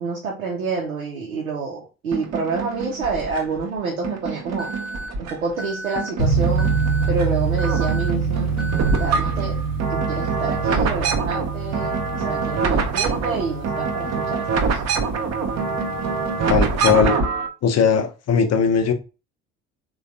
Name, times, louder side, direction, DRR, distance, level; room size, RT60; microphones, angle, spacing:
voice 1, 0.0-4.7 5.2-6.7 7.1-8.5 9.0-9.6 9.9-14.8, right 4 dB, 90° right, 0.6 m, -28 dB
sound 1, 2.1-3.6 4.0-5.6 6.0-7.3 7.5-17.5, right 4 dB, 40° right, 0.7 m, -25 dB
Alarm, 4.6-5.1 5.6-6.1 6.6-7.1 7.6-8.1 8.6-9.1, right 1 dB, ahead, 0.5 m, -33 dB
sound 2, 6.2-17.0, right 5 dB, 55° left, 1.0 m, -26 dB
voice 2, 16.5-17.2 17.6-18.9, left 6 dB, 40° left, 0.7 m, -19 dB
3.2 x 2.3 x 2.6 m
figure-of-eight pair, 50°, 41 cm